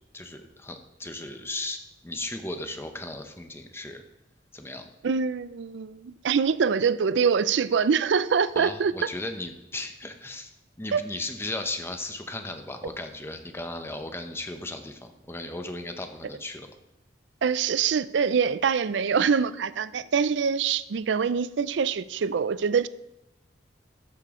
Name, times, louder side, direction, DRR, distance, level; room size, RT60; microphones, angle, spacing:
voice 1, 0.1-4.0 4.5-4.9 8.5-10.5 10.8-16.7, left 2 dB, 15° left, 6 dB, 0.8 m, -36 dB
voice 2, 5.0-8.9 10.9-11.0 17.4-22.9, right 6 dB, 70° right, 16 dB, 0.4 m, -24 dB
13.0 x 6.9 x 3.7 m, 0.89 s
head